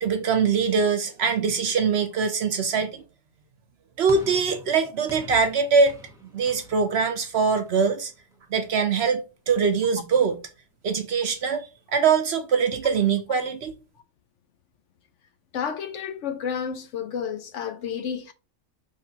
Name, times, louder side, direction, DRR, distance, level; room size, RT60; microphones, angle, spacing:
voice 1, 0.0-3.0 4.0-5.9 6.3-8.1 8.5-10.4 10.8-13.7, right 5 dB, 60° right, 0.8 m, -23 dB
sound 1, 4.1-8.5, equal, 5° right, 0.8 m, -46 dB
voice 2, 15.5-18.3, left 7 dB, 65° left, 0.8 m, -31 dB
5.7 x 3.2 x 2.7 m
omnidirectional pair, 1.4 m